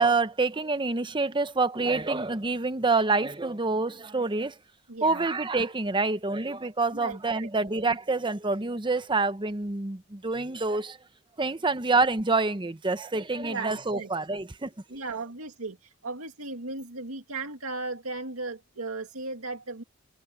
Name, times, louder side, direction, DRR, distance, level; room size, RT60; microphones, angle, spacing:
voice 1, 0.0-4.6 5.0-11.0 11.4-14.7, right 3 dB, 20° right, 0.8 m, -27 dB
voice 2, 4.9-5.3 6.9-7.7 13.4-14.1 14.9-19.8, right 3 dB, 80° right, 2.1 m, -36 dB
head